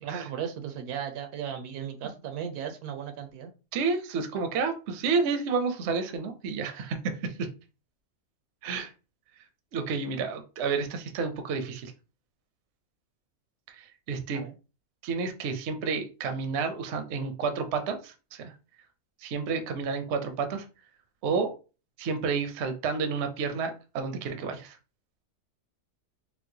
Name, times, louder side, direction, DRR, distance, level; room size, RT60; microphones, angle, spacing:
voice 1, 0.0-3.5 14.3-14.5, right 8 dB, 80° right, 7 dB, 1.1 m, -36 dB
voice 2, 3.7-7.5 8.6-8.9 9.7-11.9 13.7-14.4 15.0-18.5 19.2-20.6 21.2-21.5 22.0-24.8, right 5 dB, 60° right, 7 dB, 0.8 m, -30 dB
4.4 x 2.2 x 2.7 m, 0.32 s
omnidirectional pair, 1.6 m